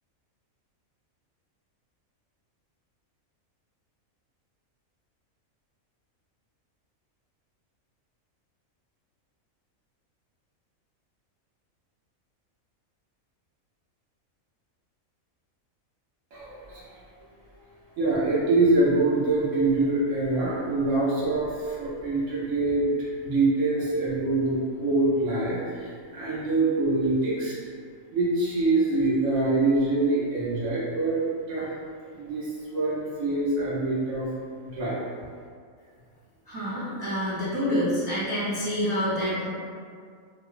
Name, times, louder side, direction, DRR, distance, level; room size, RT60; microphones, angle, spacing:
voice 1, 16.3-16.8 17.3-17.6 18.0-27.6 28.1-31.7 32.1-34.3 34.6-35.0, right 2 dB, 80° right, -7 dB, 1.2 m, -25 dB
voice 2, 36.5-39.5, equal, 40° right, -11 dB, 0.3 m, -27 dB
2.9 x 2.0 x 2.3 m, 2.1 s
omnidirectional pair, 1.5 m